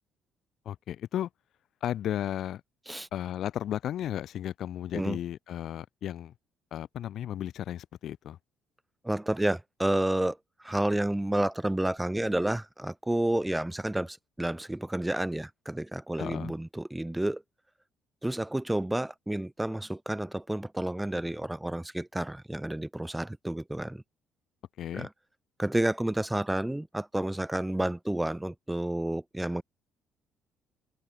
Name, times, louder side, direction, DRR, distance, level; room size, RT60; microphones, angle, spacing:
voice 1, 0.6-1.3 1.8-2.6 3.1-6.3 6.7-8.4 16.2-16.5 24.8-25.1, left 11 dB, 50° left, 0.8 m, -34 dB
voice 2, 9.0-17.4 18.2-24.0 24.9-25.1 25.6-29.6, right 1 dB, 5° right, 0.8 m, -30 dB
open air
cardioid pair, 170°, 0 cm